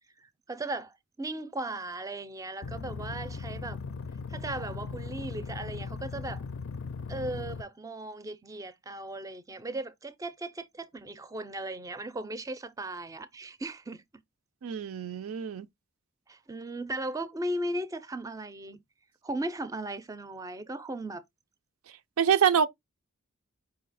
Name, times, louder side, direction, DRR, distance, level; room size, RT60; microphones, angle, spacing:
voice 1, 0.2-3.8 4.3-6.4 7.1-14.0 16.3-18.8 19.2-21.2, right 1 dB, 15° right, 0.4 m, -37 dB
sound 1, 2.6-7.6, left 4 dB, 60° left, 0.4 m, -38 dB
voice 2, 14.6-15.7 22.2-22.7, right 8 dB, 85° right, 0.4 m, -25 dB
5.0 x 2.7 x 3.9 m
head